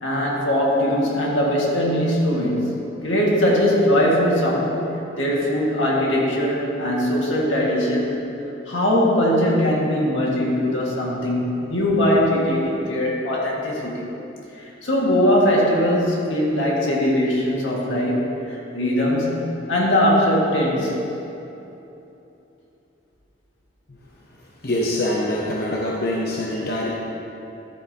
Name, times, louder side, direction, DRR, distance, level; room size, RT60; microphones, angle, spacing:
voice 1, 0.0-4.8 5.1-8.2 8.7-14.1 14.5-21.0, equal, 85° left, -4 dB, 1.9 m, -21 dB
voice 2, 24.6-26.9, left 1 dB, 55° left, -4 dB, 0.8 m, -24 dB
12.0 x 8.9 x 2.9 m, 2.9 s
head